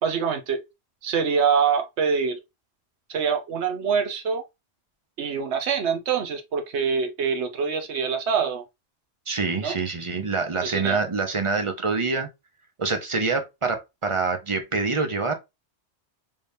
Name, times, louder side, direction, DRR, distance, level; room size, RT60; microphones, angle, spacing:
voice 1, 0.0-0.6 1.0-2.4 3.1-4.4 5.2-8.6 9.6-9.7 10.6-11.0, right 6 dB, 75° right, 1.1 m, -25 dB
voice 2, 9.3-12.3 12.8-15.3, right 4 dB, 35° right, 0.6 m, -26 dB
3.6 x 3.3 x 2.6 m
omnidirectional pair, 1.1 m